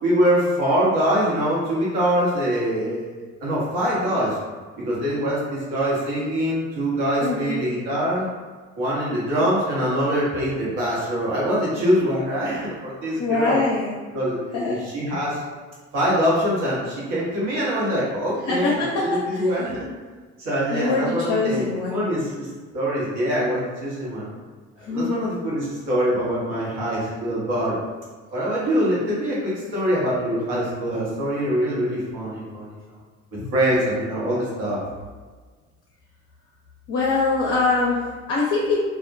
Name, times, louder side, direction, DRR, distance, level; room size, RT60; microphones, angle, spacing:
voice 1, 0.0-3.1 3.4-4.4 4.8-8.3 8.8-13.6 14.1-15.4 15.9-19.9 20.4-21.6 21.9-22.5 22.7-24.3 24.9-27.8 28.3-32.7 33.5-34.8, equal, 70° right, -7 dB, 1.0 m, -24 dB
voice 2, 7.2-7.6 13.2-14.0 14.5-14.8 18.4-19.6 20.7-22.0 24.8-25.3 33.4-33.5 36.9-38.8, left 3 dB, 45° left, -4 dB, 0.5 m, -24 dB
2.3 x 2.1 x 2.5 m, 1.4 s
hypercardioid pair, 60°, 35 cm